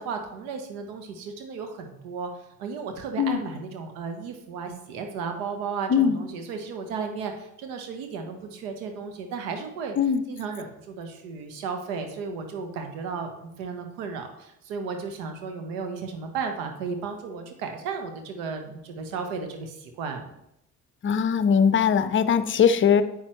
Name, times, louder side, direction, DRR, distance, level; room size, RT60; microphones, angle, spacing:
voice 1, 0.0-2.3 2.6-20.3, right 5 dB, 65° right, 5 dB, 1.3 m, -34 dB
voice 2, 21.0-23.0, left 7 dB, 25° left, 12 dB, 0.7 m, -20 dB
9.6 x 7.8 x 3.2 m, 0.83 s
figure-of-eight pair, 50°, 45 cm